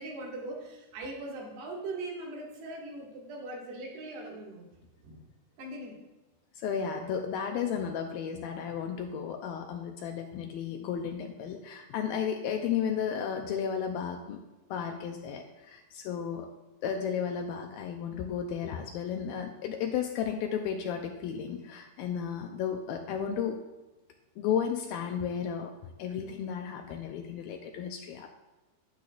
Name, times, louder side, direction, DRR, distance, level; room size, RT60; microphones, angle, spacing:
voice 1, 0.0-5.3 5.6-6.0, right 2 dB, 80° right, -3 dB, 4.2 m, -40 dB
voice 2, 6.6-14.4 14.7-16.5 16.8-23.6 24.4-25.7 26.0-28.3, left 7 dB, 80° left, 3 dB, 2.2 m, -33 dB
12.5 x 11.0 x 2.5 m, 1.1 s
omnidirectional pair, 4.7 m